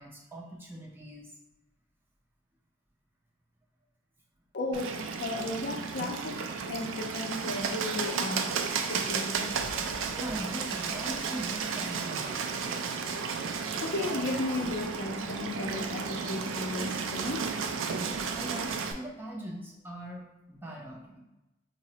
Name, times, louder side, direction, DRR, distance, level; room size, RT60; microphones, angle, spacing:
voice 1, 0.0-1.4 10.1-13.0 18.3-21.2, right 1 dB, 10° right, -2 dB, 0.4 m, -41 dB
voice 2, 4.5-8.5 8.9-9.5 13.8-17.5, left 2 dB, 60° left, 2 dB, 0.4 m, -35 dB
Bird, 4.7-18.9, right 5 dB, 90° right, 0.3 m, -33 dB
4.7 x 2.0 x 2.7 m, 0.98 s
head